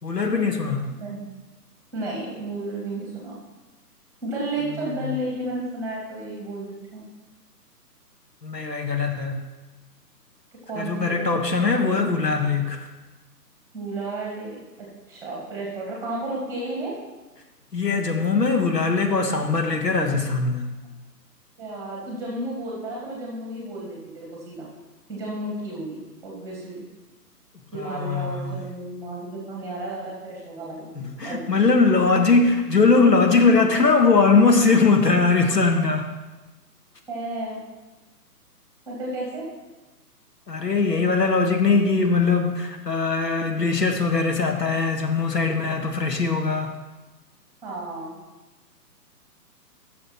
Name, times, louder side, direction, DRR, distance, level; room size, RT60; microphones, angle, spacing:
voice 1, 0.0-0.9 5.0-5.1 8.4-9.4 10.8-12.8 17.7-20.7 27.8-28.5 31.0-36.1 40.5-46.7, left 4 dB, 75° left, 3 dB, 1.6 m, -21 dB
voice 2, 0.9-1.2 1.9-3.4 4.2-7.0 10.7-11.3 13.7-16.9 20.8-20.9 21.6-24.7 25.1-26.8 27.7-30.9 31.2-31.6 37.1-37.6 38.9-39.5 47.6-48.2, right 2 dB, 5° right, -3 dB, 2.1 m, -32 dB
11.5 x 6.7 x 4.4 m, 1.1 s
figure-of-eight pair, 135°, 48 cm